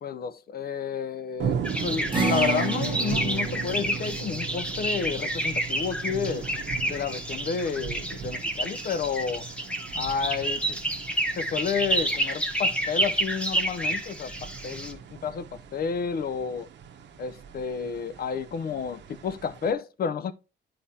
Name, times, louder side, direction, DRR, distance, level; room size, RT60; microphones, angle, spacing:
voice 1, 0.0-6.5 6.9-9.4 10.0-10.8 11.4-14.3 14.6-15.5 15.7-16.7 17.2-20.3, left 6 dB, 50° left, 0.6 m, -31 dB
sound 1, 1.4-19.7, right 7 dB, 65° right, 0.9 m, -39 dB
sound 2, 1.6-14.9, right 1 dB, 5° left, 1.0 m, -29 dB
sound 3, 2.1-8.8, right 4 dB, 25° right, 1.4 m, -34 dB
10.0 x 4.9 x 2.8 m
cardioid pair, 90°, 20 cm